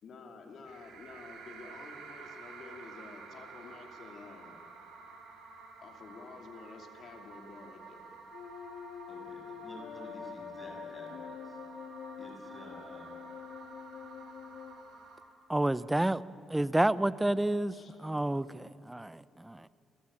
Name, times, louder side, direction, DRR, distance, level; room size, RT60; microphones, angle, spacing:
voice 1, 0.0-4.6 5.8-8.1 17.7-18.0 18.3-18.5, left 4 dB, 60° left, 4 dB, 2.7 m, -50 dB
sound 1, 0.7-15.2, right 4 dB, 85° right, 3.7 m, -50 dB
sound 2, 8.3-14.7, left 8 dB, 85° left, 2.3 m, -46 dB
voice 2, 9.1-11.6 12.2-13.1, left 1 dB, 20° left, -1 dB, 7.2 m, -51 dB
voice 3, 15.5-16.2 16.5-17.7 18.0-19.7, right 1 dB, 10° right, 17 dB, 0.7 m, -29 dB
28.5 x 15.0 x 8.8 m, 2.8 s
cardioid pair, 90°, 0 cm